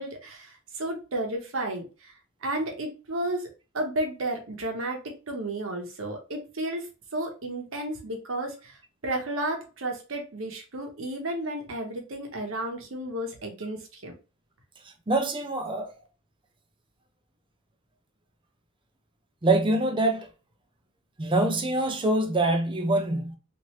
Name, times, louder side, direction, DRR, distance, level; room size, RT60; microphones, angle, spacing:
voice 1, 0.0-2.1 2.4-3.5 3.7-6.9 7.1-14.1, right 1 dB, 70° right, 0.9 m, -32 dB
voice 2, 15.1-15.9 19.4-20.3 21.2-23.4, right 2 dB, 25° right, 0.5 m, -24 dB
3.1 x 2.5 x 2.8 m
head